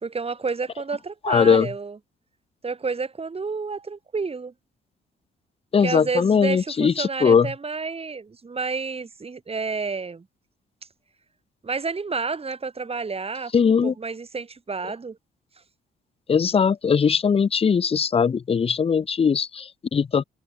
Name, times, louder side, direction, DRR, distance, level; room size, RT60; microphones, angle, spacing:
voice 1, 0.0-2.0 2.6-4.5 5.8-10.3 11.6-13.5 13.8-15.2, right 4 dB, 30° right, 3.9 m, -30 dB
voice 2, 1.2-1.7 5.7-7.5 13.5-13.9 16.3-20.2, left 6 dB, 30° left, 0.6 m, -20 dB
cardioid pair, 90°, 20 cm